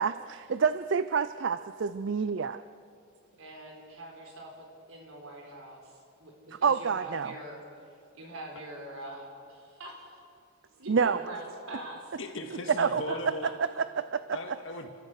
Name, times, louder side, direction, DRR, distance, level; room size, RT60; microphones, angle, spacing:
voice 1, 0.0-2.6 6.6-7.3 10.9-11.2 12.8-13.0 13.6-14.6, right 6 dB, 55° right, 13 dB, 0.4 m, -28 dB
voice 2, 3.4-7.6 8.1-10.2 10.8-12.1 12.8-13.5, right 1 dB, 75° right, 1 dB, 4.6 m, -44 dB
voice 3, 12.2-13.5 14.3-14.9, left 2 dB, 60° left, 4 dB, 2.0 m, -38 dB
30.0 x 14.0 x 6.5 m, 2.3 s
head